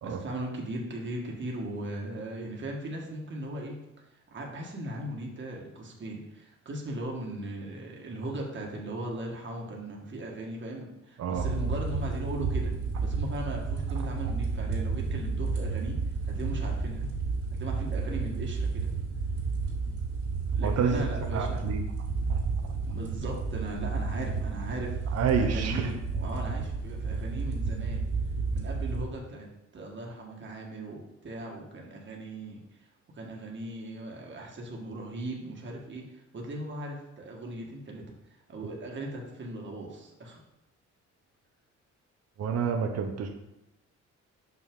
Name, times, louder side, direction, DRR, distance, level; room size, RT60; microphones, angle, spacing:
voice 1, 0.0-3.8 4.3-12.7 13.0-16.0 16.2-17.1 17.5-18.9 20.5-21.7 22.9-28.1 28.5-32.6 33.1-40.4, right 1 dB, 40° right, -1 dB, 1.6 m, -38 dB
sound 1, 11.3-29.0, right 4 dB, 80° right, 2.8 m, -31 dB
voice 2, 20.6-21.1 21.3-21.8 22.3-22.4 25.1-25.9 42.4-43.3, right 6 dB, 55° right, 4 dB, 0.9 m, -28 dB
6.2 x 5.9 x 3.7 m, 0.89 s
cardioid pair, 90°, 30 cm